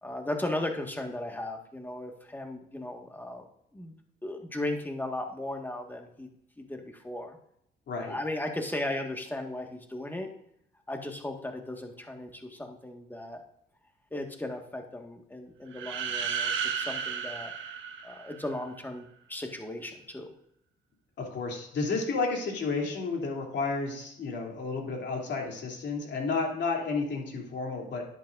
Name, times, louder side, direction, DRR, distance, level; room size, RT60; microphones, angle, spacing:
voice 1, 0.0-3.4 3.7-3.9 4.2-6.3 6.6-7.4 8.0-10.3 10.9-13.4 14.1-17.5 18.0-20.3, left 1 dB, 10° left, 3 dB, 1.7 m, -36 dB
voice 2, 7.9-8.2 21.2-28.0, left 4 dB, 65° left, 0 dB, 3.0 m, -31 dB
sound 1, 15.7-18.6, right 7 dB, 75° right, 1.2 m, -33 dB
10.5 x 10.5 x 2.6 m, 0.75 s
cardioid pair, 90°, 20 cm